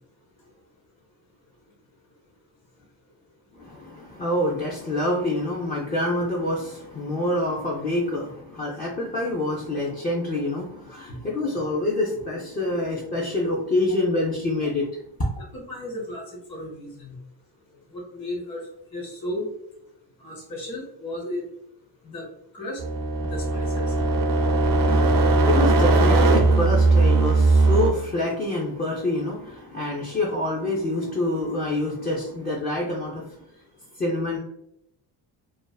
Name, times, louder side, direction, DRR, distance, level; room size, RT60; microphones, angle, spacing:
voice 1, 3.5-14.9 15.2-15.3 24.5-33.3 34.0-34.4, left 1 dB, 20° left, -4 dB, 0.4 m, -26 dB
voice 2, 15.4-16.2 16.5-17.1 17.9-18.6 18.9-19.5 20.2-21.4 22.0-22.2 22.5-22.8 23.2-23.9, left 1 dB, 50° left, 0 dB, 1.1 m, -34 dB
sound 1, 22.8-27.9, right 3 dB, 50° right, 0.4 m, -19 dB
2.4 x 2.3 x 2.2 m, 0.77 s
cardioid pair, 110°, 47 cm